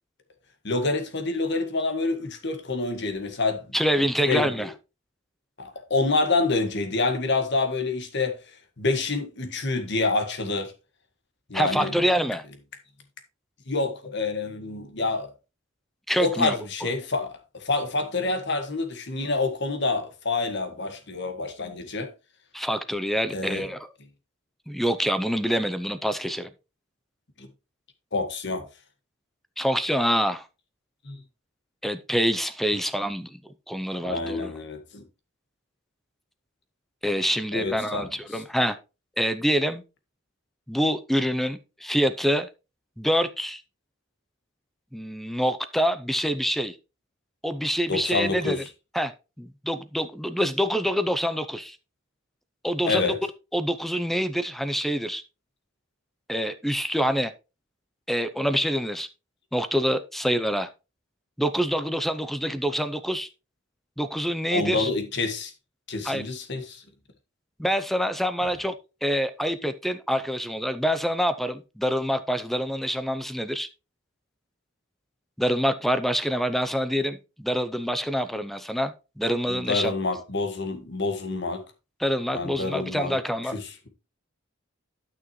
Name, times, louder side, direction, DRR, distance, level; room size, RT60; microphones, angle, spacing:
voice 1, 0.6-3.6 4.3-4.5 5.6-8.3 8.8-10.7 11.5-11.9 13.7-15.3 16.2-22.1 23.3-23.6 27.4-27.5 28.1-28.6 31.1-31.2 34.0-35.0 37.5-38.4 47.9-48.6 52.8-53.2 64.5-65.5 65.9-66.8 79.5-81.6 82.3-83.2 83.5-83.9, left 3 dB, 60° left, 1.7 m, -27 dB
voice 2, 3.7-4.7 11.5-12.4 16.1-16.6 22.5-23.9 24.7-26.5 29.6-30.4 31.8-33.4 33.7-34.5 37.0-38.8 39.2-39.8 40.7-42.5 43.0-43.6 44.9-46.8 47.4-48.6 48.9-49.1 49.4-51.8 52.6-53.1 53.5-55.2 56.3-57.3 58.1-59.1 59.5-60.7 61.4-63.3 64.0-64.9 66.0-66.2 67.6-68.7 69.0-73.7 75.4-79.9 82.0-83.6, equal, ahead, 0.6 m, -26 dB
12.0 x 6.1 x 3.1 m
head